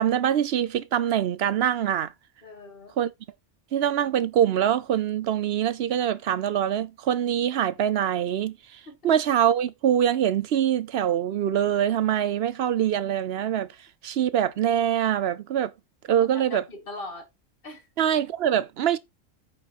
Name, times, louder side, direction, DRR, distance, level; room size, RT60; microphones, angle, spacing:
voice 1, 0.0-2.1 3.0-3.1 3.7-13.7 14.0-15.7 16.1-16.6 18.0-19.0, right 10 dB, 60° right, 0.8 m, -24 dB
voice 2, 2.4-3.0 8.9-9.0 16.1-17.3 17.6-17.9, left 2 dB, 45° left, 2.0 m, -40 dB
9.2 x 4.9 x 4.1 m
omnidirectional pair, 1.3 m